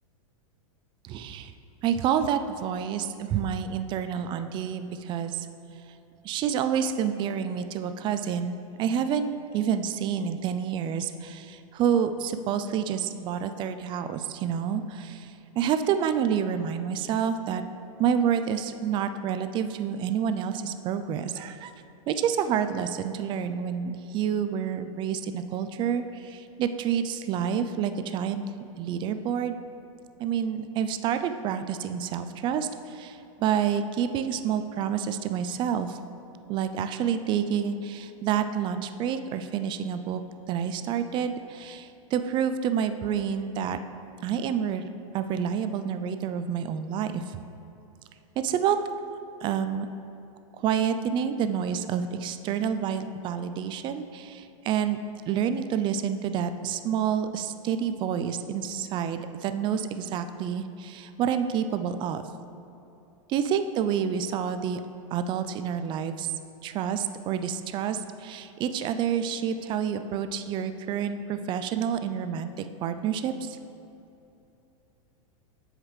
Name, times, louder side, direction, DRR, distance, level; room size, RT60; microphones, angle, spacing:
voice 1, 1.0-1.5 1.8-5.5 6.2-17.6 18.0-21.7 22.1-28.4 28.8-29.6 30.2-36.0 36.5-40.2 40.5-43.8 44.2-44.9 45.1-47.4 48.4-48.8 49.4-49.9 50.6-55.0 55.3-62.2 63.3-64.8 65.1-66.3 66.6-73.6, right 8 dB, 25° right, 9 dB, 0.3 m, -28 dB
13.5 x 4.9 x 3.2 m, 2.9 s
hypercardioid pair, 130°, 18 cm